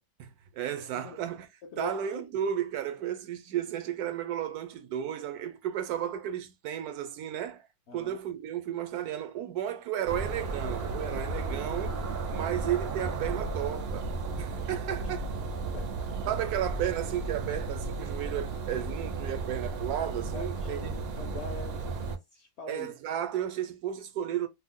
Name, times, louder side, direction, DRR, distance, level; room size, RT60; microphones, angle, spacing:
voice 1, 0.2-1.5 1.8-7.7 7.9-12.0 12.3-14.1 14.4-15.3 16.3-20.9 22.7-24.5, right 10 dB, 85° right, 1.1 m, -33 dB
voice 2, 1.6-2.2 7.9-8.2 15.7-16.1 20.3-22.9, left 2 dB, 65° left, 0.7 m, -43 dB
sound 1, 10.0-22.2, right 3 dB, 65° right, 0.6 m, -34 dB
2.7 x 2.0 x 3.5 m
omnidirectional pair, 1.6 m